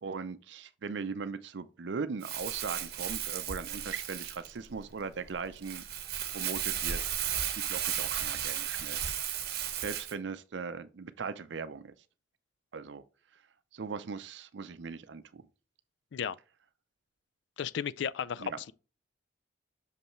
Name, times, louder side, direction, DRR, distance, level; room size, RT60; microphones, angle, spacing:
voice 1, 0.0-5.8 6.3-9.0 9.8-11.9 12.7-13.0 13.7-15.4 18.4-18.6, right 5 dB, 70° right, 0.5 m, -39 dB
Crumpling crinkling, 2.2-10.1, right 9 dB, 50° right, 1.0 m, -35 dB
voice 2, 17.6-18.7, left 8 dB, 70° left, 0.4 m, -34 dB
6.6 x 5.4 x 3.0 m
head